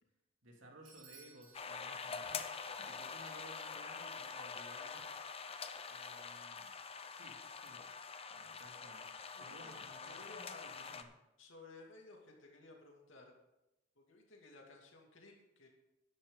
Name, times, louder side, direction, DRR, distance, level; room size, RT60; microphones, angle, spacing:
voice 1, 0.4-5.6 5.9-6.7 7.1-7.8 8.3-11.1, right 1 dB, 90° right, 1 dB, 2.6 m, -59 dB
Bell / Doorbell, 0.9-2.7, right 4 dB, 70° right, 3.7 m, -61 dB
sound 1, 1.5-11.0, left 5 dB, 30° left, 0.8 m, -45 dB
voice 2, 9.4-9.8 10.1-10.7 11.4-13.3 14.0-15.7, left 3 dB, 80° left, 0 dB, 2.6 m, -57 dB
13.5 x 11.0 x 4.0 m, 0.94 s
head